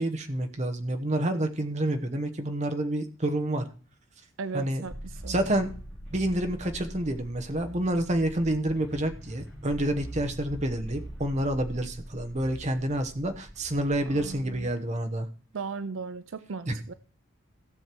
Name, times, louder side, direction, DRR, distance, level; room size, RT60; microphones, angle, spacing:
voice 1, 0.0-3.6 4.5-4.8 5.3-5.7 6.1-15.3 16.7-16.8, right 1 dB, 35° right, 6 dB, 1.0 m, -28 dB
voice 2, 4.4-5.4 14.1-14.7 15.5-16.9, right 5 dB, 70° right, 12 dB, 0.5 m, -37 dB
sound 1, 4.9-14.7, right 1 dB, 5° left, 4.0 m, -43 dB
15.5 x 6.5 x 4.6 m, 0.40 s
head